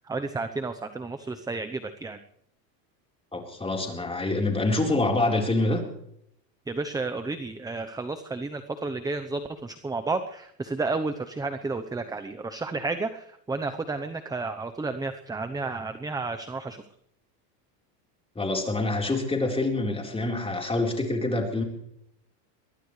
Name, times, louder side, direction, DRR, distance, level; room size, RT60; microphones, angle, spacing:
voice 1, 0.1-2.2 6.7-16.8, right 3 dB, 10° right, 9 dB, 0.8 m, -32 dB
voice 2, 3.3-5.8 18.4-21.6, left 2 dB, 10° left, 2 dB, 4.2 m, -26 dB
23.0 x 19.0 x 3.3 m, 0.74 s
supercardioid pair, 125°, 48 cm